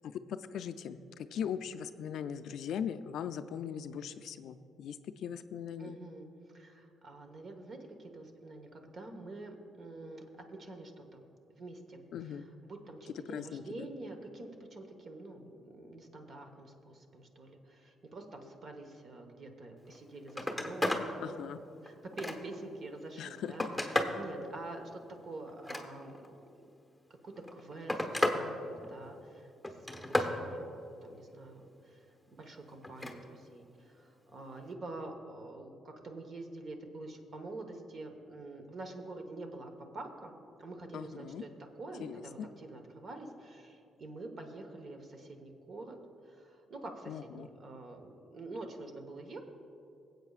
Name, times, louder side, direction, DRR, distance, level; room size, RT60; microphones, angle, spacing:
voice 1, 0.0-1.0 1.3-5.0 5.2-6.0 12.1-12.5 13.3-13.9 21.2-21.6 23.2-23.7 40.9-41.4 42.0-42.5 47.1-47.5, left 8 dB, 75° left, 11 dB, 0.4 m, -39 dB
voice 2, 5.8-6.3 6.5-10.2 10.5-21.0 21.8-26.7 27.2-29.5 29.9-40.3 40.6-41.5 41.8-46.0 46.2-49.4, right 2 dB, 50° right, 5 dB, 1.2 m, -47 dB
Telephone, 19.8-20.0 20.3-21.1 21.6-22.6 23.2-24.2 25.5-26.3 27.3-28.4 28.8-29.2 29.6-30.4 32.8-33.2 34.6-34.7, left 1 dB, ahead, 1.1 m, -33 dB
21.5 x 7.9 x 2.4 m, 2.7 s
cardioid pair, 90°, 0 cm